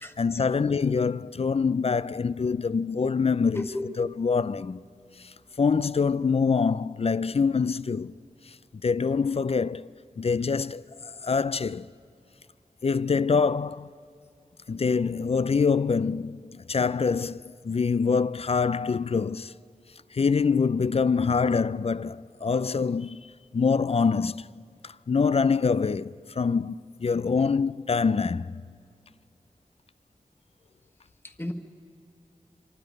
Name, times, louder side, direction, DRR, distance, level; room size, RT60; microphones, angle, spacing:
voice 1, 0.2-3.7 4.0-4.8 5.2-8.1 8.8-9.9 10.2-11.9 12.8-13.9 14.7-19.5 20.1-28.6, left 5 dB, 45° left, 0.4 m, -25 dB
voice 2, 3.5-3.9 31.2-31.5, left 1 dB, 15° left, 1.5 m, -33 dB
26.0 x 25.0 x 5.3 m
wide cardioid pair, 70°, 14 cm